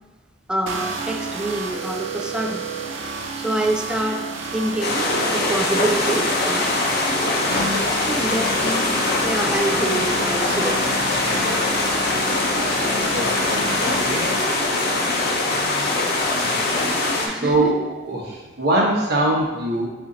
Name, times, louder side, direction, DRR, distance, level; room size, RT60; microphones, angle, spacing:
voice 1, 0.5-2.7 3.4-4.2 4.5-8.9 9.2-10.8 15.0-15.3 17.2-17.8, right 1 dB, 5° right, 3 dB, 0.3 m, -27 dB
sound 1, 0.7-14.4, right 3 dB, 80° right, 0.5 m, -30 dB
sound 2, 4.8-17.3, left 2 dB, 55° left, 0.6 m, -22 dB
voice 2, 13.1-14.2 15.3-15.4 16.5-16.7 17.0-19.9, right 1 dB, 60° right, -2 dB, 1.0 m, -23 dB
4.3 x 2.7 x 3.8 m, 1.2 s
head